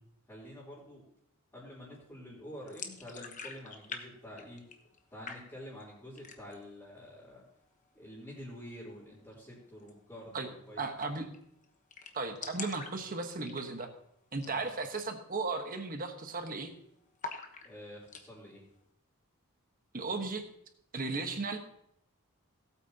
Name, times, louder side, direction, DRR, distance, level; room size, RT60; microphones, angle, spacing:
voice 1, 0.3-1.1 1.5-4.6 5.1-7.4 7.9-11.2 14.4-14.7 17.6-18.6, equal, 15° left, -11 dB, 3.5 m, -48 dB
sound 1, 2.7-4.0 4.3-5.0 5.3-5.8 6.2-6.7 7.0-7.1 7.4-8.1 9.8-9.9 10.2-10.3 10.6-10.7 11.0-11.4 11.6-11.7 11.9-14.0 14.3-14.6 14.9-15.0 15.6-15.9 16.1-16.7 17.2-18.3, left 5 dB, 35° left, 1.1 m, -44 dB
voice 2, 10.8-11.3 12.1-13.9 14.3-16.7 19.9-20.4 20.9-21.6, right 3 dB, 40° right, 5 dB, 1.2 m, -35 dB
18.5 x 8.4 x 2.9 m, 0.74 s
head